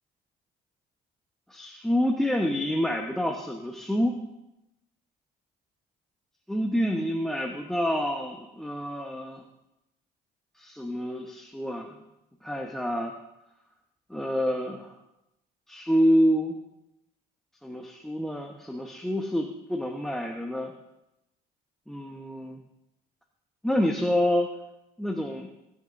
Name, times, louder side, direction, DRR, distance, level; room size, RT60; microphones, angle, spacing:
voice 1, 1.5-4.2 6.5-9.4 10.6-11.9 12.4-13.1 14.1-14.9 15.7-16.6 17.6-20.7 21.9-22.6 23.6-24.5 25.0-25.5, equal, ahead, 2 dB, 1.1 m, -27 dB
21.5 x 9.6 x 2.6 m, 0.90 s
cardioid pair, 110°, 17 cm